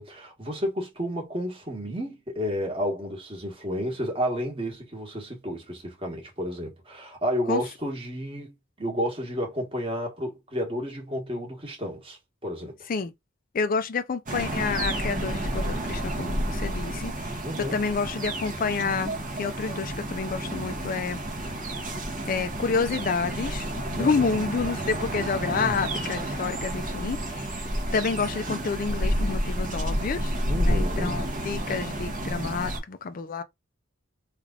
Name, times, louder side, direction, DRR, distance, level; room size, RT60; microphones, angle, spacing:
voice 1, 0.0-12.8 17.4-17.9 24.0-24.3 25.5-25.8 30.5-31.1, equal, 25° right, 1.4 m, -31 dB
voice 2, 13.5-17.4 17.7-21.2 22.3-27.6 27.9-33.4, left 5 dB, 45° left, 0.4 m, -29 dB
sound 1, 14.3-32.8, right 1 dB, 40° right, 1.1 m, -30 dB
3.3 x 2.5 x 3.6 m
head